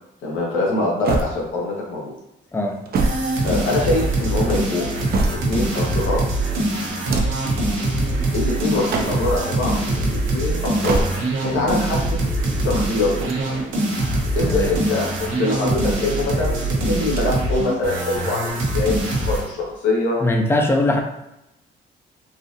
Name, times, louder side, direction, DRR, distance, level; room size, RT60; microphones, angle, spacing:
voice 1, 0.2-2.1 3.4-4.8 5.4-6.2 8.3-11.0 11.4-12.3 12.6-13.3 14.4-20.2, left 2 dB, 80° left, -3 dB, 1.2 m, -24 dB
sound 1, 1.0-1.9 2.6-4.0 4.7-5.7 6.9-7.6 8.7-9.4 10.6-11.5 13.0-14.0 14.9-15.8 17.0-17.6 17.9-18.0 19.0-19.8, right 3 dB, 50° right, 0.6 m, -27 dB
sound 2, 3.0-19.5, right 1 dB, 80° right, 0.9 m, -23 dB
voice 2, 20.2-21.0, left 1 dB, 10° left, 2 dB, 0.5 m, -20 dB
3.9 x 2.5 x 2.6 m, 0.87 s
cardioid pair, 90°, 20 cm